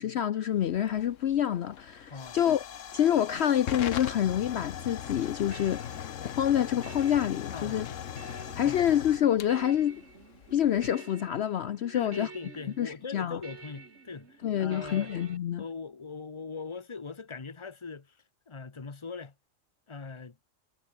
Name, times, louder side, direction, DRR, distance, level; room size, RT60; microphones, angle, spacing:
voice 1, 0.0-2.6 2.9-5.8 6.4-7.9 8.5-10.0 10.5-12.3 12.8-13.4 14.4-15.6, left 10 dB, 60° left, 0.9 m, -27 dB
Hiss / Fire / Tick, 0.5-10.9, left 9 dB, 85° left, 1.3 m, -40 dB
Twelve Hours, 4.8-15.4, right 4 dB, 65° right, 2.6 m, -50 dB
voice 2, 7.5-8.0 8.6-8.8 11.9-15.1 15.6-18.2 18.5-19.3 19.9-20.4, left 4 dB, 25° left, 1.1 m, -40 dB
omnidirectional pair, 1.3 m